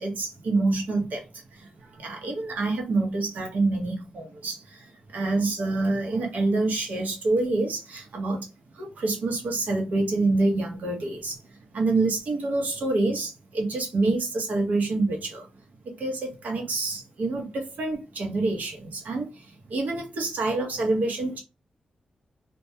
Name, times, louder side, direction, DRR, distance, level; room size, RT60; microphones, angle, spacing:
voice 1, 0.0-8.5 8.7-11.4 11.7-15.5 15.8-21.4, right 2 dB, 80° right, 0.8 m, -27 dB
2.2 x 2.2 x 2.8 m
cardioid pair, 80°, 3 cm